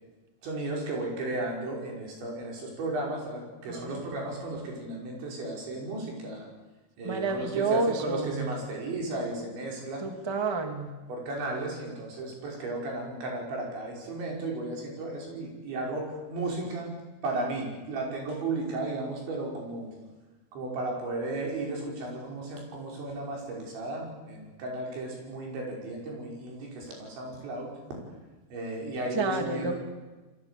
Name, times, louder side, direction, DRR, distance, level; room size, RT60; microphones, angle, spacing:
voice 1, 0.4-6.5 7.0-10.1 11.1-16.9 17.2-19.9 20.5-27.7 28.5-29.8, right 2 dB, 70° right, 0 dB, 7.8 m, -34 dB
voice 2, 3.7-4.2 7.0-8.5 10.0-10.9 29.1-29.7, right 3 dB, 10° right, 4 dB, 1.3 m, -30 dB
29.0 x 22.0 x 8.5 m, 1.2 s
omnidirectional pair, 5.4 m